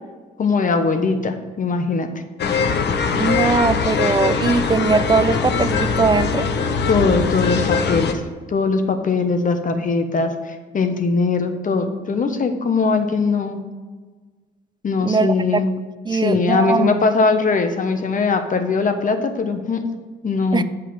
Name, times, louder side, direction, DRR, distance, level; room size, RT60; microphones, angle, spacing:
voice 1, 0.4-2.1 6.9-8.2 8.5-13.6 14.8-15.7 16.1-19.8 20.2-20.6, left 4 dB, 40° left, 1.1 m, -20 dB
sound 1, 2.4-8.1, left 5 dB, 60° left, 0.9 m, -21 dB
voice 2, 3.2-6.5 15.0-15.6 16.1-17.0 20.5-20.6, right 4 dB, 20° right, 0.4 m, -20 dB
8.2 x 5.5 x 5.5 m
cardioid pair, 90°, 20 cm